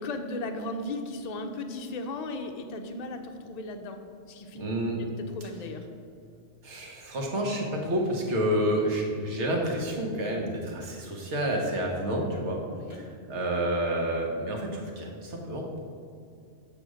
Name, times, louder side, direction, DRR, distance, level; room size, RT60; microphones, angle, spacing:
voice 1, 0.0-4.0 4.3-4.6 5.0-5.9 12.7-13.0, left 2 dB, 50° left, 5 dB, 0.5 m, -36 dB
voice 2, 4.6-5.0 6.6-12.6 12.9-15.8, right 1 dB, 70° right, 0 dB, 1.4 m, -29 dB
7.5 x 3.4 x 6.2 m, 2.3 s
omnidirectional pair, 1.2 m